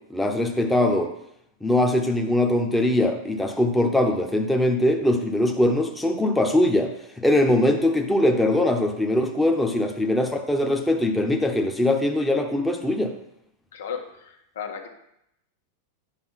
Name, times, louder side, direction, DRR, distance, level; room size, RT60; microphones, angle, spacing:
voice 1, 0.1-1.1 1.6-13.1, left 1 dB, 5° left, 2 dB, 0.9 m, -22 dB
voice 2, 13.7-14.9, left 7 dB, 90° left, 3 dB, 1.6 m, -35 dB
9.9 x 5.1 x 5.8 m, 0.78 s
supercardioid pair, 150°, 0 cm